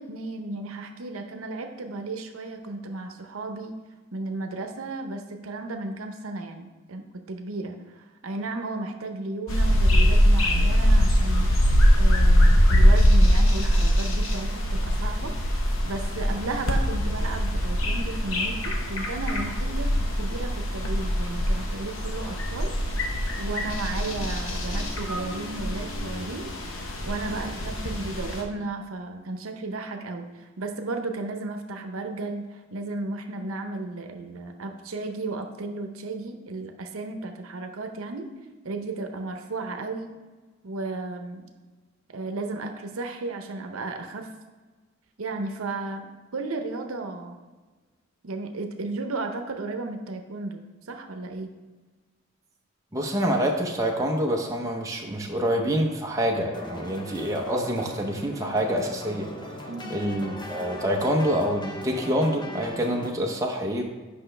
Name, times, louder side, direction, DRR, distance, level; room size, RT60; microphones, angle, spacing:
voice 1, 0.0-3.7 4.1-15.4 15.8-26.5 27.0-32.4 32.7-38.3 38.6-40.1 40.6-41.4 42.1-44.3 45.2-47.4 48.2-51.5 59.7-59.9, right 3 dB, 85° right, 5 dB, 0.7 m, -34 dB
sound 1, 9.5-28.4, equal, 70° left, 0.9 m, -22 dB
voice 2, 52.9-59.3 59.9-63.8, equal, 15° right, 0 dB, 0.7 m, -26 dB
sound 2, 56.5-63.1, left 1 dB, 20° left, 0.6 m, -39 dB
8.2 x 5.5 x 3.3 m, 1.3 s
head